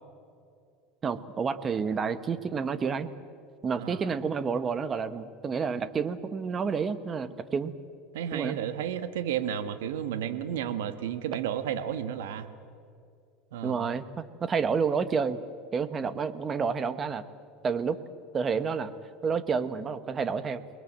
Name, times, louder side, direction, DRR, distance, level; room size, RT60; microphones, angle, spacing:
voice 1, 1.0-3.1 3.6-7.7 8.3-8.6 13.6-15.4 15.7-17.2 17.6-18.0 18.3-18.9 19.2-20.6, right 5 dB, 25° right, 13 dB, 1.3 m, -29 dB
voice 2, 8.1-12.5 13.5-13.9, right 9 dB, 90° right, 10 dB, 1.5 m, -32 dB
29.0 x 21.0 x 7.6 m, 2.4 s
supercardioid pair, 130°, 0 cm